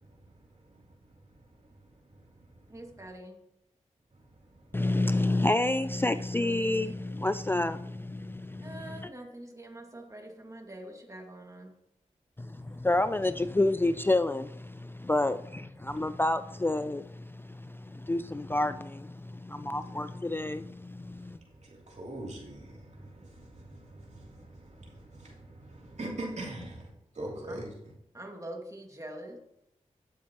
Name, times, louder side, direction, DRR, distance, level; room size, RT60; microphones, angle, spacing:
voice 1, 0.0-3.0 4.1-4.9 8.5-8.7 12.6-12.9 15.8-16.0 19.6-19.8 21.1-27.7, right 1 dB, 60° right, 3.0 m, -44 dB
voice 2, 2.7-3.4 8.6-11.7 27.5-27.7 28.1-29.4, right 1 dB, 25° right, 2.1 m, -44 dB
voice 3, 4.7-9.1 12.4-21.4, left 2 dB, 15° left, 0.4 m, -29 dB
12.0 x 7.2 x 3.0 m
cardioid pair, 45°, 13 cm